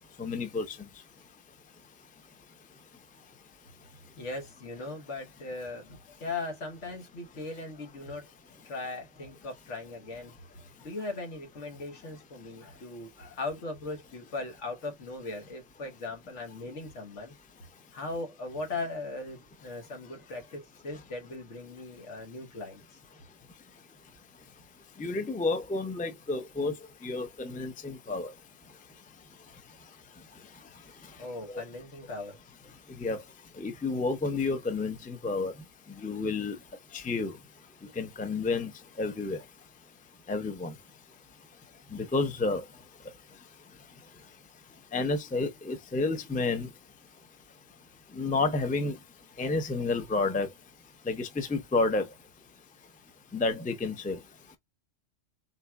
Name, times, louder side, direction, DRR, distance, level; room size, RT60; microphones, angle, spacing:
voice 1, 0.2-0.8 25.0-26.7 27.0-28.3 31.5-31.6 33.0-33.2 33.6-35.5 36.0-36.6 36.9-37.3 38.0-38.7 39.0-39.4 40.3-40.7 41.9-42.6 44.9-46.7 48.2-49.0 49.4-50.5 51.1-52.1 53.3-54.2, left 3 dB, 10° left, 0.4 m, -30 dB
voice 2, 4.2-8.3 8.6-10.3 10.8-17.3 17.9-22.8 31.2-32.4, left 3 dB, 85° left, 1.5 m, -39 dB
4.1 x 4.1 x 2.3 m
omnidirectional pair, 1.2 m